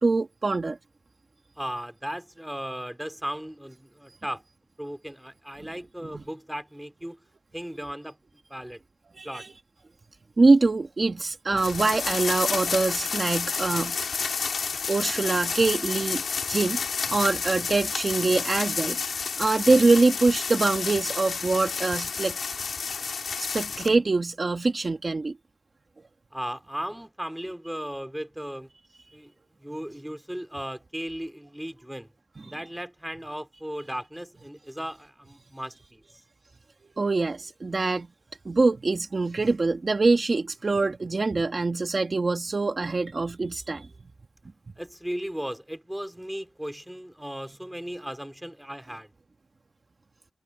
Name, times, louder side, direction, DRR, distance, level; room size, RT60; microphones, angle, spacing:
voice 1, 0.0-0.8 5.6-5.7 6.1-6.2 9.2-9.5 10.4-14.0 14.9-16.2 16.5-19.0 19.4-22.4 23.4-25.3 37.0-38.1 38.4-43.9, right 3 dB, 30° right, 1.3 m, -24 dB
voice 2, 1.6-4.4 4.8-7.2 7.5-8.2 8.5-8.8 9.2-9.5 26.3-28.7 29.1-29.3 29.6-32.1 32.4-36.0 44.8-49.1, equal, 5° right, 2.4 m, -36 dB
sound 1, 11.6-23.9, left 5 dB, 55° left, 2.3 m, -30 dB
wide cardioid pair, 160°, 0 cm